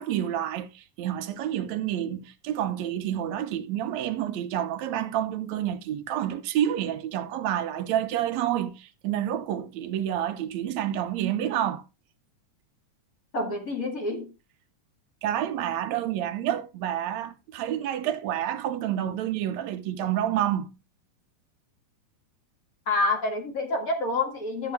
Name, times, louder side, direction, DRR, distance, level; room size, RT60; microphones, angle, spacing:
voice 1, 0.0-11.8 15.2-20.7, right 11 dB, 70° right, 1.8 m, -29 dB
voice 2, 13.3-14.3 22.8-24.7, left 2 dB, 35° left, 1.6 m, -27 dB
12.5 x 6.8 x 3.5 m
omnidirectional pair, 3.8 m